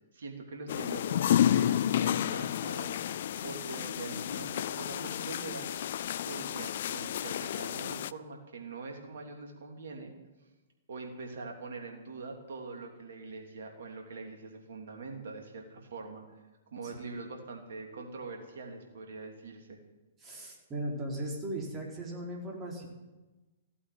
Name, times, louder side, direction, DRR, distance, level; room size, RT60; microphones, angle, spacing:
voice 1, 0.1-2.9 3.4-5.7 6.2-10.1 10.9-16.4 16.7-19.8, right 3 dB, 60° right, 2 dB, 3.0 m, -43 dB
sound 1, 0.7-8.1, left 10 dB, 50° left, 0.4 m, -31 dB
voice 2, 20.2-22.9, right 1 dB, 20° right, -2 dB, 4.4 m, -37 dB
15.5 x 8.5 x 9.5 m, 1.2 s
figure-of-eight pair, 115°, 0 cm